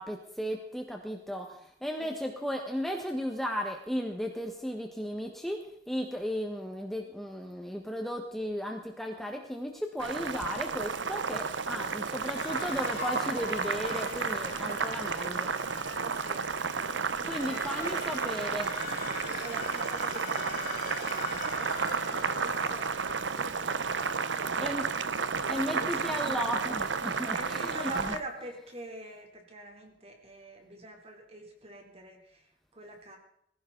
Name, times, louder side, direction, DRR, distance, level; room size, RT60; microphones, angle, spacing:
voice 1, 0.0-5.6 5.9-15.5 17.3-18.7 24.6-24.9 25.5-28.1, equal, ahead, 2 dB, 1.5 m, -35 dB
voice 2, 2.0-2.4 16.0-16.5 16.8-17.9 18.9-24.9 25.4-26.5 27.1-33.2, right 1 dB, 35° right, 3 dB, 3.6 m, -45 dB
Boiling, 10.0-28.2, right 5 dB, 80° right, 0.9 m, -32 dB
sound 1, 12.2-16.6 17.2-22.9, left 5 dB, 55° left, 4.8 m, -42 dB
20.0 x 16.0 x 4.0 m, 0.73 s
head